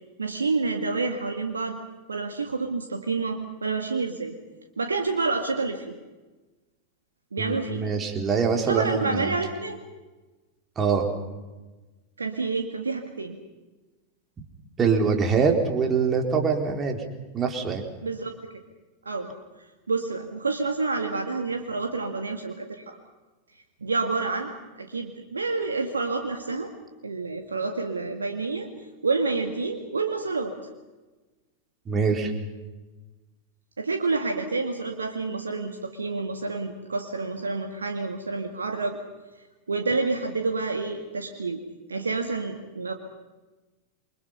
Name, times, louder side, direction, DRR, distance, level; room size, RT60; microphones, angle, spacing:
voice 1, 0.2-1.8 2.1-4.3 4.8-5.9 7.3-7.9 8.7-9.8 12.2-13.4 18.0-18.3 19.1-19.3 19.9-23.0 23.8-24.5 24.8-26.7 27.0-28.7 29.0-30.5 33.8-39.0 39.7-41.6 41.9-42.9, right 3 dB, 75° right, 4 dB, 1.9 m, -28 dB
voice 2, 7.4-9.3 10.8-11.1 14.8-17.0 17.3-17.8 31.9-32.3, right 5 dB, 20° right, 3 dB, 4.0 m, -24 dB
28.0 x 25.0 x 5.8 m, 1.2 s
figure-of-eight pair, 90°, 0 cm